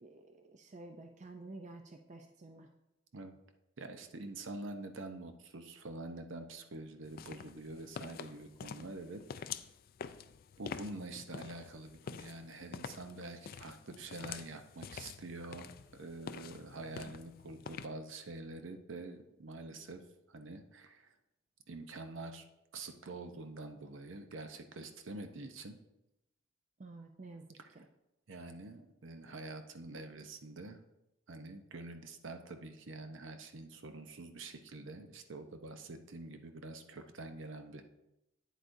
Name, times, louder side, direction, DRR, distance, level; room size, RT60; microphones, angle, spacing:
voice 1, 0.0-2.7 26.8-27.5 27.8-27.9, right 2 dB, 35° right, 5 dB, 0.4 m, -50 dB
voice 2, 3.8-9.5 10.6-21.2 21.7-22.4 22.7-25.8 27.6-27.7 28.3-30.8 31.3-37.8, right 2 dB, 65° right, 7 dB, 0.7 m, -46 dB
sound 1, 7.0-17.9, left 7 dB, 45° left, 0.3 m, -47 dB
9.2 x 8.0 x 2.6 m, 0.89 s
head